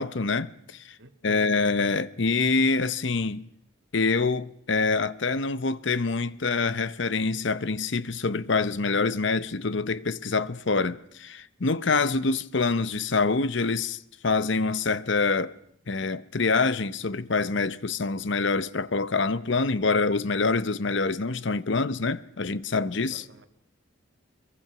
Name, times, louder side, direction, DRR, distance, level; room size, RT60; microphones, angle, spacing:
voice 1, 0.0-1.0 1.2-3.5 3.9-15.5 15.9-23.2, left 4 dB, 60° left, 0.8 m, -26 dB
voice 2, 1.0-1.7 23.1-23.5, right 2 dB, 60° right, 1.8 m, -51 dB
24.5 x 22.5 x 6.0 m
head